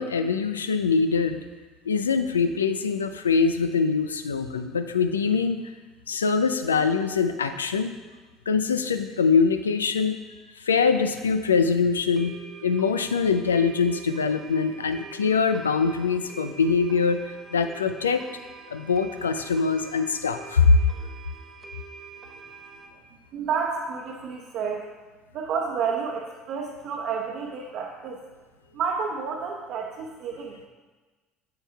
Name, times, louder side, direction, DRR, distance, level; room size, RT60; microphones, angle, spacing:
voice 1, 0.0-1.4 1.9-5.6 6.1-7.9 8.5-10.2 10.6-12.3 12.6-17.2 17.5-18.2 18.7-20.8, left 5 dB, 85° left, 9 dB, 0.3 m, -23 dB
sound 1, 10.9-11.0 11.2-11.3 11.7-11.8 12.2-22.9, right 5 dB, 30° right, 0.9 m, -45 dB
voice 2, 23.3-24.9 25.3-28.2 28.7-30.6, right 6 dB, 55° right, -1 dB, 0.8 m, -30 dB
8.6 x 7.4 x 2.3 m, 1.3 s
hypercardioid pair, 65°, 0 cm